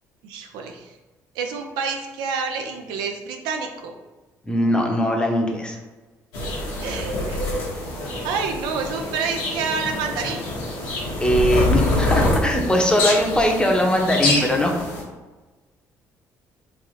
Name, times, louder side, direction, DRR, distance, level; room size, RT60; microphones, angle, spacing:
voice 1, 0.2-0.9 1.3-3.9 6.8-7.4 8.2-10.5, right 5 dB, 85° right, 4 dB, 0.4 m, -28 dB
voice 2, 4.4-5.8 11.2-14.8, left 1 dB, 10° left, 2 dB, 0.8 m, -20 dB
sound 1, 6.3-15.0, left 1 dB, 90° left, 1.0 m, -25 dB
3.2 x 2.5 x 4.0 m, 1.2 s
supercardioid pair, 65°, 7 cm